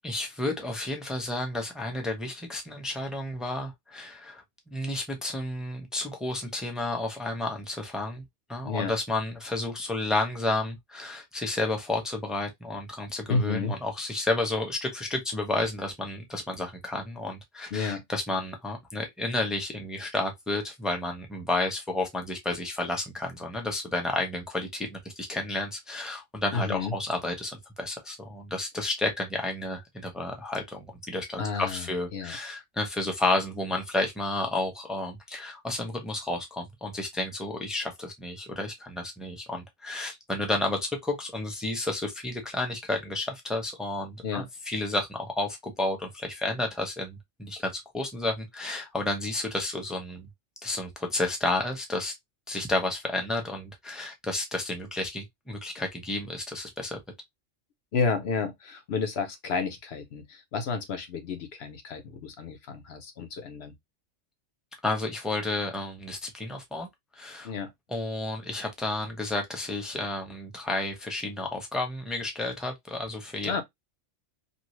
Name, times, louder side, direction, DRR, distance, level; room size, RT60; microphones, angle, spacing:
voice 1, 0.0-8.2 8.5-50.3 50.6-52.1 52.5-57.0 64.8-66.9 67.1-67.5 67.9-73.6, left 2 dB, ahead, 0.6 m, -31 dB
voice 2, 8.6-8.9 13.3-13.8 17.7-18.0 26.5-26.9 31.4-32.4 44.2-44.5 57.9-63.7 67.4-67.7 73.4-73.6, left 4 dB, 60° left, 1.0 m, -31 dB
2.7 x 2.7 x 2.9 m
omnidirectional pair, 1.3 m